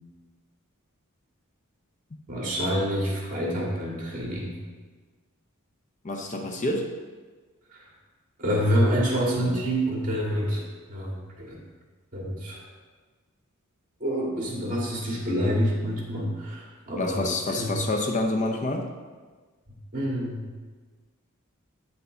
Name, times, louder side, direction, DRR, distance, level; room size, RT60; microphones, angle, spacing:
voice 1, 2.3-4.6 7.7-7.9 8.4-11.6 12.1-12.6 14.0-17.8 19.9-20.4, equal, 40° right, -3 dB, 2.1 m, -27 dB
voice 2, 6.0-6.9 17.0-18.9, left 2 dB, 35° left, 3 dB, 0.7 m, -27 dB
9.0 x 5.6 x 3.8 m, 1.4 s
head